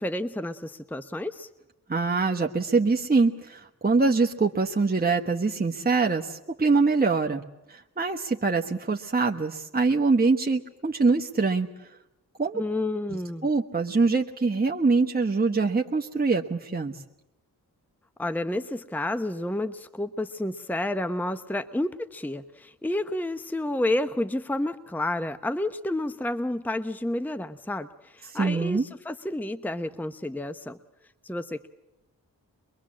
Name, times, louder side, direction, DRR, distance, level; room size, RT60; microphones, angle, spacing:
voice 1, 0.0-1.5 12.5-13.5 18.2-30.8 31.2-31.7, left 1 dB, 5° left, 11 dB, 0.9 m, -30 dB
voice 2, 1.9-7.4 7.7-11.7 12.4-12.6 13.4-16.9 28.3-28.8, right 4 dB, 25° right, 2 dB, 1.3 m, -24 dB
23.0 x 22.5 x 7.6 m, 0.94 s
cardioid pair, 45°, 37 cm